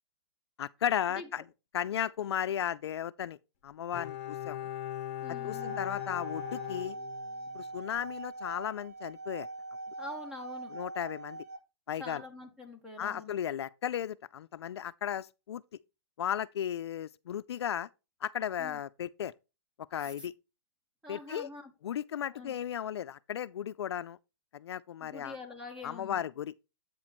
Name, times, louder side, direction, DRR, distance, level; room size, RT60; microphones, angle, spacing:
voice 1, 0.6-1.4 1.7-3.4 3.6-4.7 5.4-7.0 7.5-9.5 10.7-11.4 11.9-12.2 13.0-15.6 16.2-17.9 18.2-19.3 19.9-20.3 21.1-21.5 21.8-24.2 24.5-25.4 25.8-26.5, left 10 dB, 70° left, 0.4 m, -35 dB
Bowed string instrument, 3.9-7.7 8.0-8.1, left 12 dB, 30° left, 1.0 m, -39 dB
voice 2, 5.2-5.8 10.0-10.7 12.0-13.3 18.6-18.8 20.0-20.3 21.0-21.7 22.3-22.6 25.0-26.2, left 2 dB, 5° right, 0.9 m, -45 dB
sound 1, 5.3-11.6, right 2 dB, 65° right, 3.8 m, -42 dB
8.3 x 4.4 x 4.1 m
hypercardioid pair, 175°, 14 cm